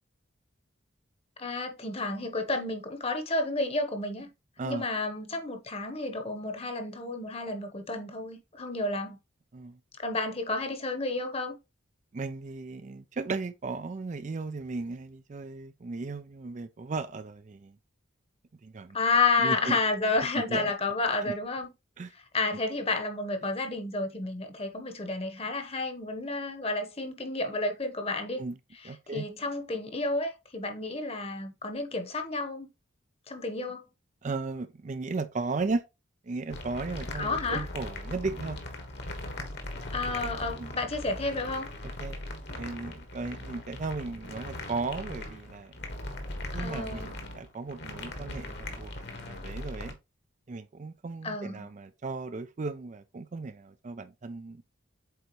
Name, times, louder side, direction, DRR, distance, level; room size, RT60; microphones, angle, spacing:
voice 1, 1.4-4.3 4.6-9.2 10.0-11.6 18.9-21.7 22.3-28.4 29.1-32.7 33.3-33.8 37.1-37.6 39.9-41.7 46.6-47.1 51.2-51.7, left 3 dB, 30° left, 1.1 m, -31 dB
voice 2, 12.1-17.8 18.6-19.0 19.4-19.8 20.3-20.7 21.2-21.3 22.0-22.1 28.3-28.6 28.8-29.2 34.2-35.8 36.2-38.6 40.6-40.7 41.8-42.2 42.5-45.7 46.5-50.0 50.5-54.6, right 3 dB, 35° right, 0.4 m, -36 dB
sound 1, 36.5-49.9, left 1 dB, 55° left, 1.4 m, -39 dB
8.0 x 4.0 x 3.1 m
head